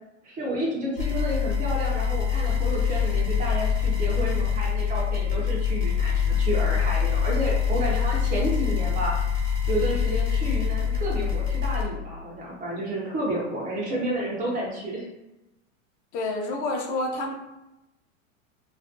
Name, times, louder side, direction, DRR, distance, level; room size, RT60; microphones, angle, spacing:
voice 1, 0.2-9.1 9.7-15.1, right 1 dB, 20° right, -3 dB, 0.4 m, -30 dB
sound 1, 1.0-11.8, left 7 dB, 70° left, 1.0 m, -25 dB
voice 2, 16.1-17.3, left 2 dB, 45° left, 1 dB, 0.6 m, -28 dB
2.4 x 2.1 x 2.4 m, 0.93 s
hypercardioid pair, 110°, 39 cm